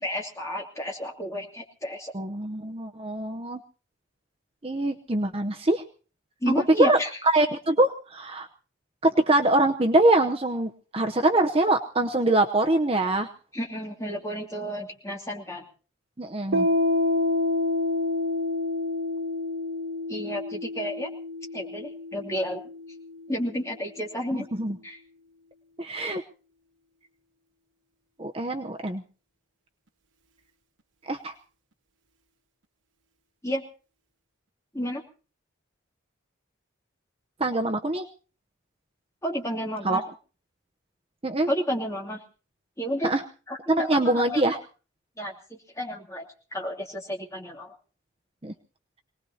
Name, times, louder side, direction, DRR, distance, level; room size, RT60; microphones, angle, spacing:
voice 1, 0.0-2.1 6.4-7.1 13.5-15.6 20.1-21.1 21.5-22.6 23.3-24.5 24.8-25.0 33.4-33.6 34.7-35.0 39.2-40.0 41.5-42.2 42.8-43.1 43.5-44.4 45.2-46.2 46.5-47.7, equal, 15° left, 0 dB, 2.7 m, -31 dB
voice 2, 2.1-3.6 4.6-5.8 6.8-7.0 7.2-8.5 9.0-13.3 16.2-16.7 24.3-24.8 25.8-26.2 28.2-29.0 31.0-31.3 37.4-38.0 39.8-40.0 41.2-41.5 43.0-43.2 43.7-44.6 48.4-48.5, right 2 dB, 25° right, 3 dB, 0.8 m, -24 dB
Piano, 16.5-23.8, left 2 dB, 65° right, 1.2 m, -28 dB
25.5 x 19.0 x 2.8 m, 0.37 s
head